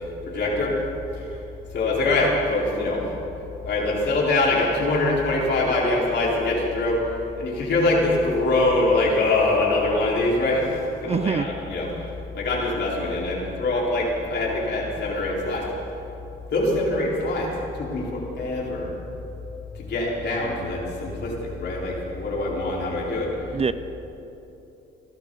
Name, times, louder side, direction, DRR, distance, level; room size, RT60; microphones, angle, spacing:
voice 1, 0.3-0.7 1.1-1.2 1.7-3.0 3.6-7.0 7.4-10.7 11.0-11.9 12.3-15.7 16.5-17.5 17.8-18.9 19.8-23.3, left 2 dB, 60° left, -4 dB, 4.5 m, -23 dB
voice 2, 11.0-11.5 23.5-23.7, right 6 dB, 30° right, 13 dB, 0.5 m, -24 dB
27.0 x 12.5 x 4.0 m, 2.9 s
cardioid pair, 90°, 20 cm